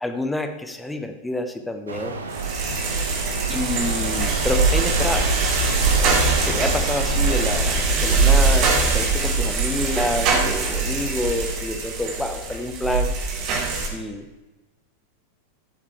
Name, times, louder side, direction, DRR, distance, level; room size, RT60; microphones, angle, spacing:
voice 1, 0.0-2.2 3.5-5.3 6.5-13.1 13.9-14.3, left 1 dB, 5° left, 6 dB, 1.0 m, -28 dB
sound 1, 1.9-7.6, right 4 dB, 70° right, 1.0 m, -31 dB
sound 2, 2.3-13.9, right 3 dB, 40° right, 2.0 m, -22 dB
sound 3, 2.4-11.6, right 4 dB, 55° right, 1.2 m, -32 dB
13.5 x 7.2 x 3.3 m, 1.1 s
figure-of-eight pair, 90°, 0 cm